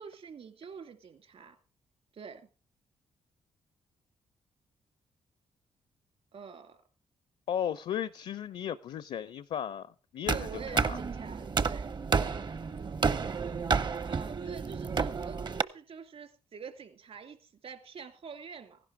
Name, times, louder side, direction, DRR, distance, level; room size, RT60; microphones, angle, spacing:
voice 1, 0.0-1.6 2.1-2.5 6.3-6.8 10.3-12.0 14.0-18.8, right 6 dB, 65° right, 2.5 m, -46 dB
voice 2, 7.5-11.0, left 9 dB, 70° left, 0.6 m, -35 dB
sound 1, 10.3-15.6, right 5 dB, 45° right, 0.8 m, -31 dB
15.5 x 11.0 x 4.7 m
supercardioid pair, 55°, 11 cm